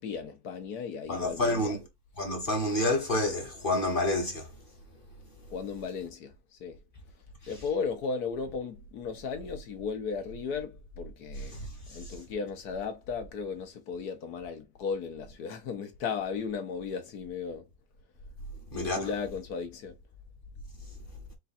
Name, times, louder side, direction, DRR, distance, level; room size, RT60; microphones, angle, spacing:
voice 1, 0.0-1.8 5.5-6.8 7.5-17.7 18.7-20.0, left 5 dB, 75° left, 1.5 m, -36 dB
voice 2, 1.1-1.8 2.2-4.5 11.5-11.7 12.0-12.1 18.7-19.0, left 1 dB, 35° left, 1.3 m, -28 dB
4.6 x 2.5 x 4.2 m
omnidirectional pair, 1.7 m